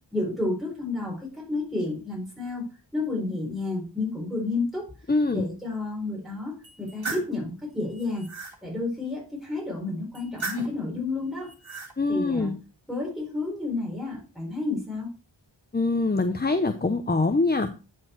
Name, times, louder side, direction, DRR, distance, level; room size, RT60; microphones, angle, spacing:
voice 1, 0.1-4.9 5.3-8.3 8.6-11.5 12.1-12.6 12.9-15.1, left 3 dB, ahead, -3 dB, 4.6 m, -31 dB
voice 2, 5.1-5.5 12.0-12.5 15.7-17.7, left 3 dB, 20° left, 9 dB, 0.7 m, -24 dB
sound 1, 6.6-7.3 7.9-8.6 10.1-10.8 11.4-11.9, right 3 dB, 85° right, 2.1 m, -36 dB
9.6 x 4.6 x 4.5 m, 0.32 s
wide cardioid pair, 55°, 45 cm